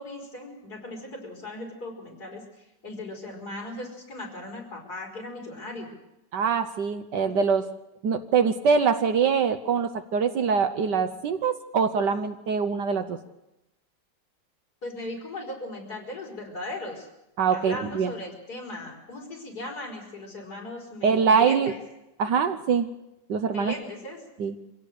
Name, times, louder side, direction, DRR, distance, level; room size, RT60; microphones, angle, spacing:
voice 1, 0.0-6.0 14.8-17.1 17.5-21.8 23.5-24.2, left 2 dB, 50° left, 0 dB, 5.2 m, -38 dB
voice 2, 6.3-7.7 8.0-13.2 17.4-18.1 21.0-21.7 22.2-22.9 23.3-23.7 24.4-24.5, right 6 dB, 65° right, 9 dB, 1.4 m, -23 dB
25.0 x 16.5 x 6.7 m, 0.93 s
omnidirectional pair, 2.2 m